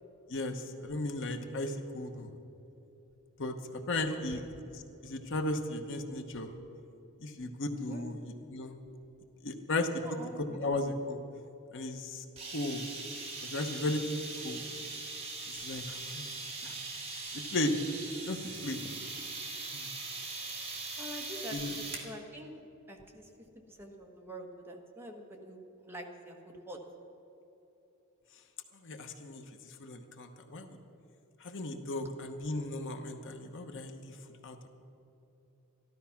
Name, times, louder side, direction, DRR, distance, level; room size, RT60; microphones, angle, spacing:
voice 1, 0.3-2.3 3.4-4.4 4.7-6.5 7.2-8.2 8.5-8.7 9.4-11.2 11.7-12.2 12.5-12.8 13.4-14.6 15.5-16.3 16.6-16.8 17.3-17.8 18.3-18.8 19.7-19.9 21.5-21.7 28.8-30.8 31.4-34.2 34.4-34.7, left 2 dB, 60° left, 6 dB, 1.0 m, -36 dB
voice 2, 4.1-4.4 7.9-8.1 9.9-10.6 21.0-22.5 22.9-23.3 23.7-26.8, equal, 10° right, 1 dB, 1.3 m, -46 dB
sound 1, 12.4-22.1, right 3 dB, 30° right, 2.0 m, -41 dB
13.5 x 12.5 x 5.9 m, 3.0 s
head